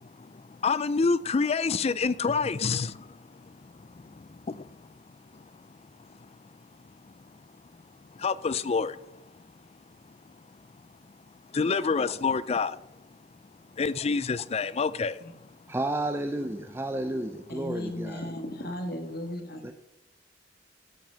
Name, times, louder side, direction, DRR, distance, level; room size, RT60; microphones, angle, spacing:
voice 1, 0.6-2.9 8.2-8.9 11.5-12.8 13.8-15.1, left 4 dB, 35° left, 0.4 m, -26 dB
voice 2, 15.7-18.3 19.6-19.7, right 1 dB, 15° right, 0.6 m, -31 dB
voice 3, 17.5-19.6, left 1 dB, 60° left, 1.8 m, -36 dB
14.0 x 6.1 x 5.6 m
head